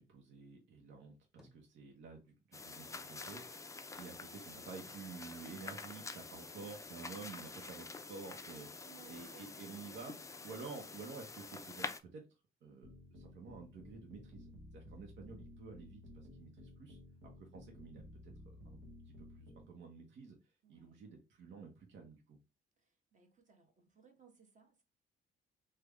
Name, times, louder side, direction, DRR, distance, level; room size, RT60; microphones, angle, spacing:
voice 1, 0.0-12.2 12.6-18.3 18.6-18.8 19.1-20.4 20.7-22.4, right 4 dB, 70° right, 0.9 m, -51 dB
sound 1, 1.2-2.4 2.7-5.1 5.5-6.4, equal, ahead, 0.8 m, -71 dB
sound 2, 2.5-12.0, left 3 dB, 15° left, 0.4 m, -48 dB
voice 2, 4.2-4.5 5.5-5.8 6.3-6.8 8.3-9.9 10.9-11.1 20.6-21.0 22.8-24.8, right 6 dB, 40° right, 1.2 m, -65 dB
sound 3, 12.8-19.7, left 1 dB, 90° right, 1.1 m, -55 dB
3.3 x 2.2 x 3.5 m
cardioid pair, 90°, 20 cm